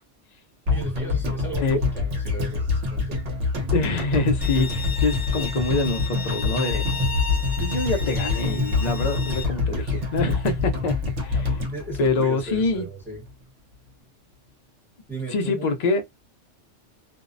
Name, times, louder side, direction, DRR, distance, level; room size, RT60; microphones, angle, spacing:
voice 1, 0.7-3.2 11.7-13.2 15.1-15.8, right 2 dB, ahead, 0.8 m, -36 dB
sound 1, 0.7-12.9 13.1-13.2, left 3 dB, 70° right, 1.2 m, -26 dB
voice 2, 3.7-6.8 7.6-11.6 12.0-12.9 15.3-16.0, left 3 dB, 55° left, 0.4 m, -25 dB
Bowed string instrument, 4.4-9.4, left 5 dB, 30° left, 0.8 m, -34 dB
2.6 x 2.0 x 2.5 m
omnidirectional pair, 1.3 m